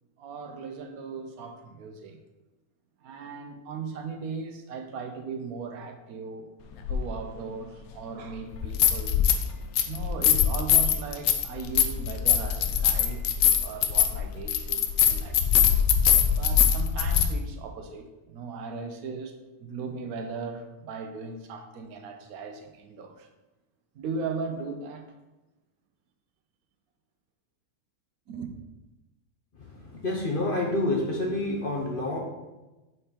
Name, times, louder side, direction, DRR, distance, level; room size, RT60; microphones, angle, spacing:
voice 1, 0.2-2.2 3.0-6.5 6.9-9.2 9.8-13.2 13.6-15.4 16.2-23.3 23.9-25.0 28.3-28.6, right 4 dB, 75° right, 1.1 m, -38 dB
sound 1, 6.9-7.0 8.5-9.5 9.8-17.3, left 9 dB, 75° left, 1.0 m, -22 dB
voice 2, 29.6-32.2, left 2 dB, 50° left, 0.7 m, -28 dB
4.4 x 4.3 x 5.0 m
omnidirectional pair, 1.6 m